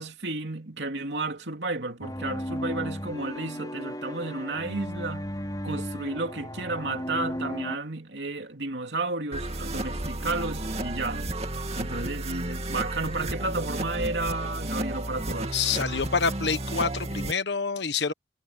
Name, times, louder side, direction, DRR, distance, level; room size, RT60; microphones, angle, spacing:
voice 1, 0.0-5.3 5.6-11.3 11.7-15.6, right 2 dB, 80° right, 2.8 m, -32 dB
sound 1, 2.0-7.8, equal, 20° left, 4.4 m, -35 dB
sound 2, 9.3-17.3, right 1 dB, 35° right, 2.6 m, -32 dB
voice 2, 15.5-18.1, left 5 dB, 80° left, 1.4 m, -27 dB
head